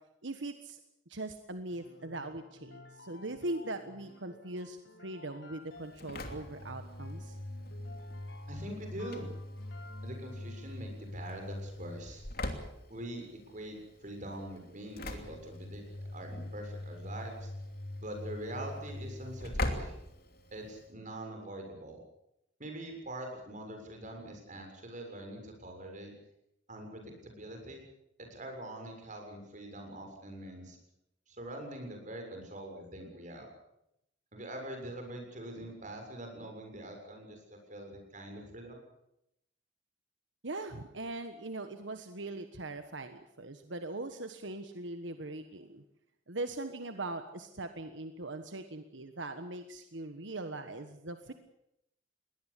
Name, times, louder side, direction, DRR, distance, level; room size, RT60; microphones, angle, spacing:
voice 1, 0.2-0.8 1.1-7.4 40.4-45.8 46.3-51.3, right 2 dB, 85° right, 8 dB, 1.4 m, -40 dB
sound 1, 1.7-10.9, left 2 dB, 75° left, 5.1 m, -55 dB
Engine / Slam, 5.7-20.9, left 1 dB, 55° left, 2.9 m, -41 dB
voice 2, 8.5-9.3 10.0-12.2 12.9-13.3 13.5-13.8 14.0-15.8 16.1-17.5 18.0-19.9 20.5-22.0 22.6-26.1 26.7-27.8 28.3-30.8 31.3-33.5 34.3-38.8, right 1 dB, 45° right, 3 dB, 7.1 m, -44 dB
22.0 x 18.5 x 8.4 m, 0.82 s
head